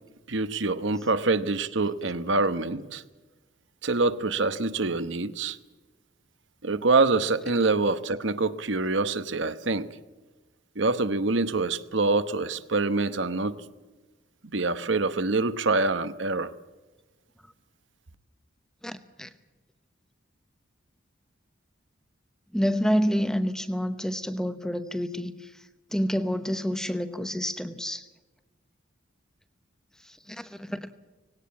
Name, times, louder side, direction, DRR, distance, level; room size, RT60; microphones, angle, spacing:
voice 1, 0.3-3.0 3.8-5.6 6.6-9.9 10.8-13.5 14.5-16.5, right 3 dB, 70° right, 12 dB, 1.0 m, -25 dB
voice 2, 18.8-19.3 22.5-28.1 30.0-30.9, equal, 5° left, 11 dB, 0.9 m, -29 dB
19.0 x 17.5 x 8.6 m, 1.2 s
head